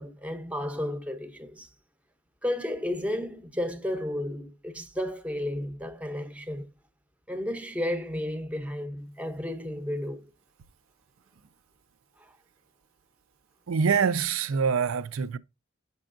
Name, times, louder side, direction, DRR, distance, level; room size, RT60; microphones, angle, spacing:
voice 1, 0.0-1.7 2.4-6.7 7.3-10.3 12.2-12.3, left 1 dB, 5° right, 0.6 m, -33 dB
voice 2, 13.7-15.4, right 6 dB, 80° right, 0.5 m, -25 dB
6.9 x 5.5 x 2.5 m
head